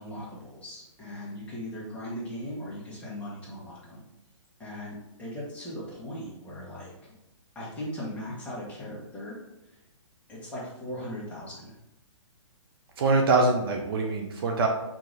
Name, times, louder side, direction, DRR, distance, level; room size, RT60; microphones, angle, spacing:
voice 1, 0.0-4.0 4.6-6.9 7.5-9.4 9.7-9.8 10.3-11.7, equal, 10° left, -7 dB, 1.3 m, -38 dB
voice 2, 13.0-14.7, right 3 dB, 50° right, 2 dB, 0.6 m, -23 dB
4.8 x 2.9 x 3.8 m, 0.90 s
hypercardioid pair, 150°, 16 cm